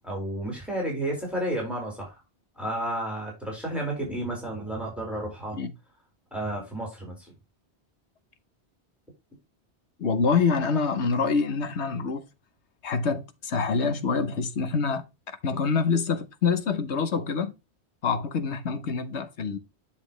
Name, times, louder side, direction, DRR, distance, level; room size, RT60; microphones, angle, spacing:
voice 1, 0.0-2.2 2.6-5.6 6.3-7.3, right 1 dB, ahead, 4.6 m, -31 dB
voice 2, 10.0-12.2 12.8-15.0 15.4-17.5 18.0-19.6, left 5 dB, 80° left, 1.3 m, -26 dB
10.0 x 6.1 x 3.1 m
omnidirectional pair, 1.1 m